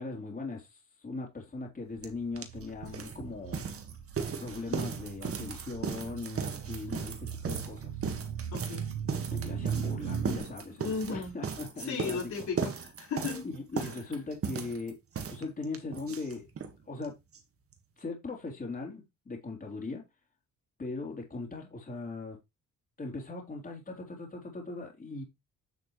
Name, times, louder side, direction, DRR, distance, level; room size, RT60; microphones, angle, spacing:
voice 1, 0.0-3.6 4.4-7.9 9.3-12.5 13.4-15.0 15.3-16.5 16.9-17.1 18.0-20.0 20.8-22.4 23.0-25.2, left 3 dB, 30° left, 3.8 m, -39 dB
sound 1, 2.0-2.1 2.4-16.8 17.0-17.1 17.3-17.4 17.7-17.8, right 6 dB, 50° right, 1.9 m, -37 dB
sound 2, 2.0-10.4, right 8 dB, 80° right, 1.2 m, -39 dB
voice 2, 8.5-8.9 10.8-11.3 11.8-13.5, left 5 dB, 70° left, 4.8 m, -35 dB
9.5 x 6.5 x 3.3 m
cardioid pair, 90°, 30 cm